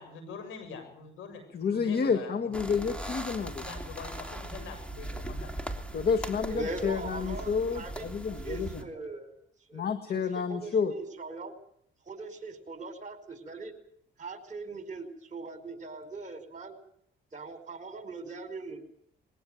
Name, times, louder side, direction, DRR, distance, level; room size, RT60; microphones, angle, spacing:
voice 1, 0.0-2.8 3.6-5.6, left 5 dB, 85° left, 8 dB, 7.6 m, -44 dB
voice 2, 1.5-3.7 5.9-8.8 9.7-10.9, left 6 dB, 55° left, 8 dB, 1.9 m, -30 dB
sound 1, 2.5-8.8, right 1 dB, 5° left, 3.1 m, -39 dB
voice 3, 6.5-8.0 8.4-9.3 9.7-9.9 10.1-11.5 12.0-13.7 14.2-16.7 17.3-18.8, right 3 dB, 40° right, 8 dB, 5.0 m, -40 dB
22.0 x 17.5 x 9.3 m, 0.68 s
cardioid pair, 90°, 20 cm